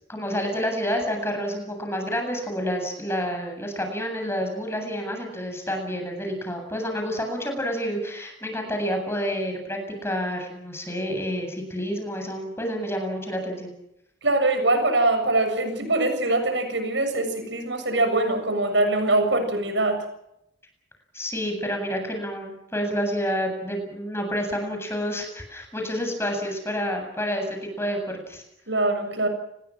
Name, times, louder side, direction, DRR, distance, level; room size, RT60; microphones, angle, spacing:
voice 1, 0.1-13.7 21.1-28.4, equal, 15° left, 4 dB, 8.0 m, -29 dB
voice 2, 14.2-20.0 28.7-29.3, right 2 dB, 70° right, 8 dB, 7.3 m, -23 dB
29.5 x 21.5 x 6.3 m, 0.81 s
head